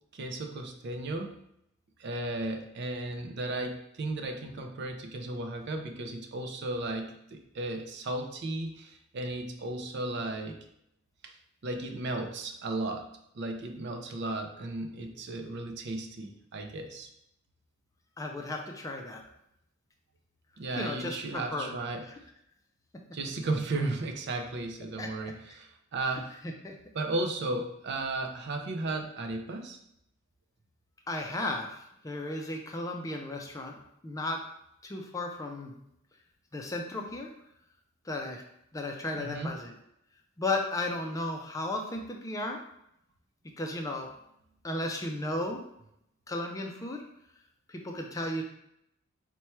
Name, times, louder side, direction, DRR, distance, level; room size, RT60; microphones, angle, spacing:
voice 1, 0.1-1.3 2.0-10.6 11.2-11.3 11.6-13.1 13.3-17.1 20.6-22.0 23.1-26.3 26.9-29.8 39.1-39.6, right 2 dB, 55° right, 4 dB, 0.5 m, -35 dB
voice 2, 18.2-19.2 20.8-21.8 22.1-22.2 25.0-25.3 26.6-26.8 31.1-33.8 34.0-34.4 34.8-35.7 36.5-37.3 38.1-38.4 38.7-39.7 40.4-42.6 43.6-44.1 44.6-45.6 46.3-47.0 47.7-48.4, left 2 dB, 15° left, 2 dB, 0.4 m, -34 dB
4.4 x 2.2 x 4.3 m, 0.77 s
head